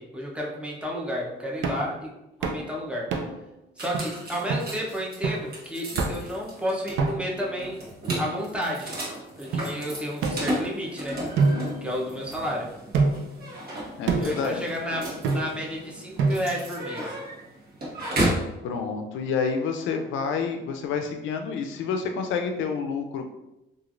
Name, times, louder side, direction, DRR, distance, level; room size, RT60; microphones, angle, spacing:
voice 1, 0.0-2.1 2.4-3.1 3.8-7.8 8.2-8.9 9.4-11.2 11.8-12.7 14.2-17.2, equal, 5° right, -2 dB, 0.7 m, -31 dB
sound 1, 1.6-1.9 2.4-2.7 3.1-3.5 3.9-4.0 4.5-4.7 5.2-5.5 6.0-6.3 7.0-7.4 8.1-8.8 9.5-9.6 10.2-10.9 11.4-12.4 12.9-13.4 14.1-14.4 15.2-15.7 16.2-16.7, right 4 dB, 75° right, 0.5 m, -27 dB
sound 2, 3.8-18.5, right 1 dB, 50° right, 1.1 m, -34 dB
voice 2, 14.0-14.7 18.6-23.3, left 5 dB, 80° left, 5 dB, 0.4 m, -29 dB
3.0 x 2.4 x 2.5 m, 0.93 s
cardioid pair, 90°, 20 cm